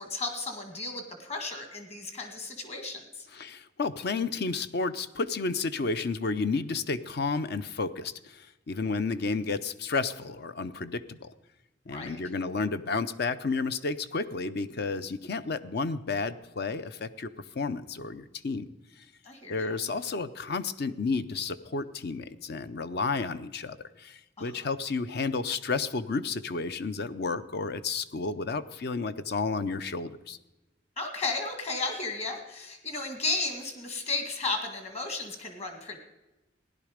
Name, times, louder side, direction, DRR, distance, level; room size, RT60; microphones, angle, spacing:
voice 1, 0.0-3.3 11.9-12.2 19.2-19.8 24.4-24.7 31.0-36.0, left 3 dB, 35° left, 5 dB, 1.9 m, -34 dB
voice 2, 3.3-11.3 11.9-17.3 17.5-18.7 19.5-30.4, left 4 dB, 60° left, 13 dB, 0.6 m, -31 dB
16.0 x 11.0 x 5.0 m, 1.0 s
head